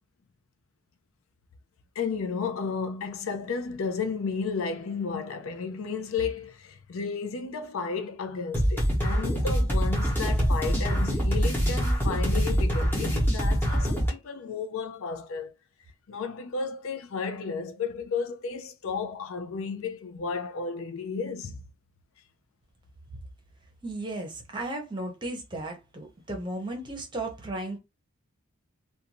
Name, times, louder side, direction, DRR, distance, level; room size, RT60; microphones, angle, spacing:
voice 1, 2.0-15.5 16.1-21.6, left 5 dB, 70° left, 0.4 m, -33 dB
sound 1, 8.5-14.1, equal, 10° left, 0.9 m, -24 dB
voice 2, 23.8-27.8, right 2 dB, 20° right, 0.7 m, -35 dB
2.5 x 2.2 x 2.9 m
head